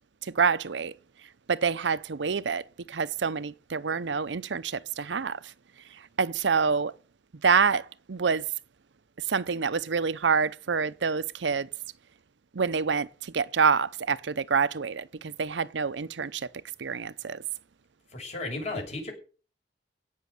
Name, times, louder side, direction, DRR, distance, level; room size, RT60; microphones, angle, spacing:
voice 1, 0.2-0.9 1.5-5.5 5.9-6.9 7.4-8.5 9.2-11.7 12.5-16.5 16.8-17.4, right 5 dB, 80° right, 0.6 m, -27 dB
voice 2, 18.1-19.1, left 2 dB, 40° left, 6.7 m, -34 dB
16.5 x 6.4 x 9.4 m
head